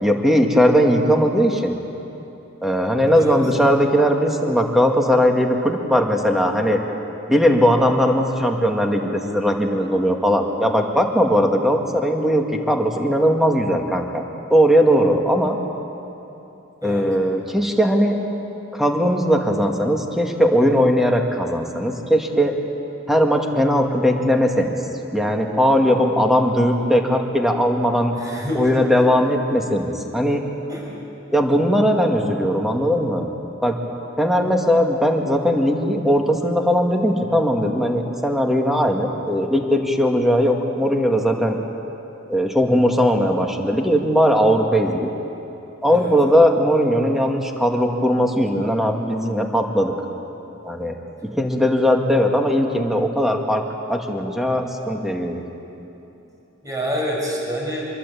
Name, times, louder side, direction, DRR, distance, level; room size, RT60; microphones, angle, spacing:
voice 1, 0.0-1.8 2.6-6.8 7.3-14.2 14.5-15.6 16.8-18.2 18.7-22.5 23.1-24.8 25.1-28.1 28.5-30.4 31.3-33.3 33.6-33.8 34.2-41.6 42.3-45.1 45.8-49.9 50.6-50.9 51.2-53.6 53.9-55.4, equal, ahead, 2 dB, 2.1 m, -19 dB
voice 2, 28.2-28.8 30.7-30.9 45.9-46.1 56.6-57.8, equal, 20° right, -2 dB, 6.4 m, -27 dB
26.0 x 22.0 x 8.6 m, 3.0 s
head